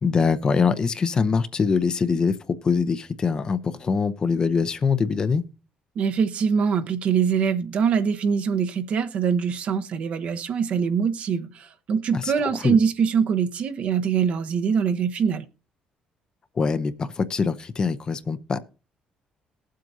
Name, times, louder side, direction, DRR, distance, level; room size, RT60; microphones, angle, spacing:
voice 1, 0.0-2.4 2.6-5.4 12.1-12.8 16.6-18.6, left 5 dB, 30° left, 0.7 m, -23 dB
voice 2, 6.0-15.4, right 6 dB, 50° right, 0.9 m, -23 dB
19.5 x 7.6 x 2.7 m
cardioid pair, 145°, 3 cm